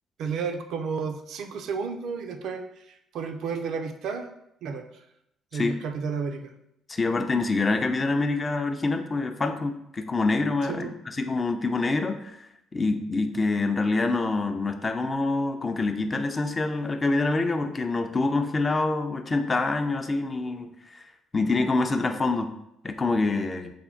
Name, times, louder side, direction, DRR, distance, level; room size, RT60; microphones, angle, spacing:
voice 1, 0.2-4.3 4.6-5.0 5.5-6.5 10.7-11.0, right 5 dB, 75° right, 5 dB, 0.4 m, -32 dB
voice 2, 6.9-21.0 21.3-22.5 22.8-23.7, left 3 dB, 30° left, 7 dB, 0.4 m, -26 dB
3.4 x 2.1 x 3.6 m, 0.79 s
cardioid pair, 80°, 0 cm